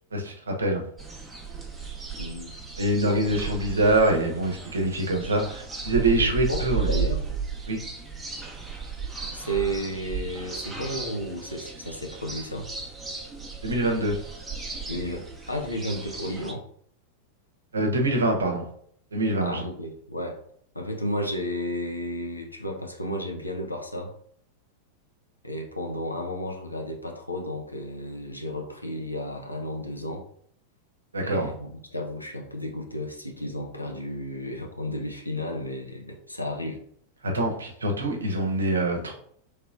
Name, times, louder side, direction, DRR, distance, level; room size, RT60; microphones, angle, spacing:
voice 1, 0.1-0.8 2.8-6.9 7.7-7.8 13.6-14.2 17.7-18.7 19.1-19.6 31.1-31.5 37.2-39.2, right 1 dB, 75° right, 2 dB, 0.7 m, -25 dB
sound 1, 1.0-16.5, right 5 dB, 10° right, 0.7 m, -35 dB
voice 2, 2.2-2.5 3.0-3.6 6.2-7.2 9.3-12.7 14.9-16.6 19.4-20.4 20.7-24.1 25.4-30.3 31.2-36.8, equal, 85° left, 1 dB, 0.6 m, -33 dB
3.2 x 2.9 x 2.4 m, 0.63 s
figure-of-eight pair, 90°, 0 cm